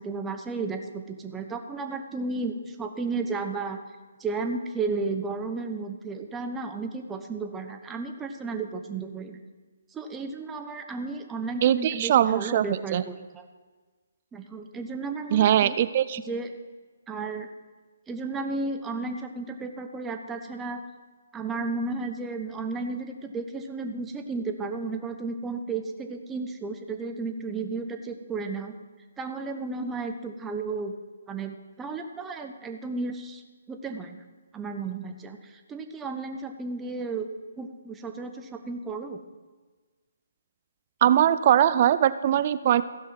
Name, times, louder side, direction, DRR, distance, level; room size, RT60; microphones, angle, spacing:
voice 1, 0.0-3.8 4.2-9.4 9.9-13.5 14.3-15.8 16.3-16.5 17.1-17.5 18.1-20.8 21.3-28.8 29.2-30.9 31.3-33.4 33.7-34.2 34.5-37.3 37.6-39.2, right 3 dB, 10° right, 5 dB, 0.8 m, -33 dB
voice 2, 11.6-13.0 15.3-16.2 41.0-42.8, right 11 dB, 40° right, 14 dB, 0.3 m, -21 dB
15.0 x 5.6 x 5.9 m, 1.4 s
figure-of-eight pair, 140°, 0 cm